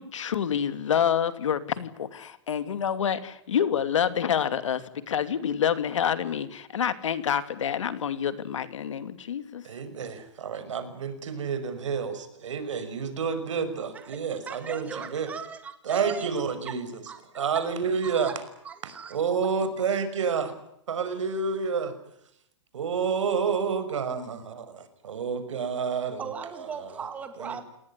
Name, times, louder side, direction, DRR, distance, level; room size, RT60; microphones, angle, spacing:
voice 1, 0.0-9.7, left 8 dB, 90° left, 11 dB, 2.7 m, -27 dB
voice 2, 9.6-15.3 15.8-17.0 17.3-18.3 18.8-20.5 20.9-22.0 22.7-26.3 26.6-26.9 27.4-27.6, right 6 dB, 90° right, 11 dB, 5.8 m, -29 dB
voice 3, 13.9-16.3 17.1-17.2 18.0-18.3 18.6-19.2 26.2-27.6, right 6 dB, 10° right, 8 dB, 2.1 m, -38 dB
28.5 x 19.5 x 9.8 m, 0.77 s
hypercardioid pair, 175°, 15 cm